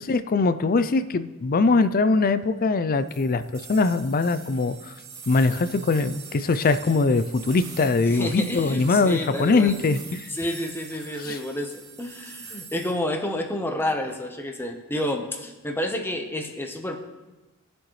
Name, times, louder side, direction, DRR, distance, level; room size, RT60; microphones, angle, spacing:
voice 1, 0.0-4.9 5.3-10.3 11.2-11.4, left 3 dB, 40° left, 13 dB, 0.4 m, -22 dB
sound 1, 3.1-12.9, right 5 dB, 50° right, 3.0 m, -44 dB
voice 2, 8.1-9.8 10.3-17.0, left 1 dB, 10° left, 4 dB, 1.0 m, -30 dB
20.0 x 7.7 x 3.2 m, 1.2 s
head